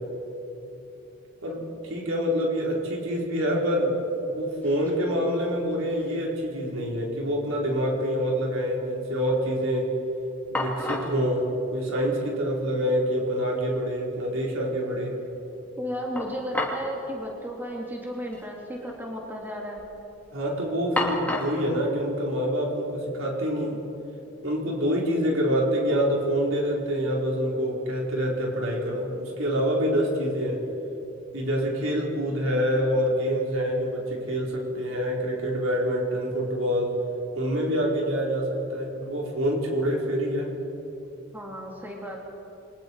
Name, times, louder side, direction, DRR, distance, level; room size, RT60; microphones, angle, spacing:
voice 1, 1.9-3.9 4.3-9.9 10.5-11.5 11.7-15.1 20.3-23.8 24.4-30.6 31.3-37.0 37.4-40.5, equal, 80° right, -2 dB, 4.6 m, -26 dB
sound 1, 4.1-4.2 4.4-5.0 5.4-6.3 6.5-6.6 10.0-10.1 10.5-11.2 12.3-12.4 12.8-12.9 16.2-16.9 17.2-17.3 18.2-18.4 18.7-19.3 19.7-20.1 21.0-21.7, left 1 dB, 10° left, 2.6 m, -31 dB
voice 2, 15.8-19.8 41.3-42.2, equal, 10° right, -2 dB, 2.8 m, -34 dB
29.0 x 24.0 x 4.8 m, 3.0 s
head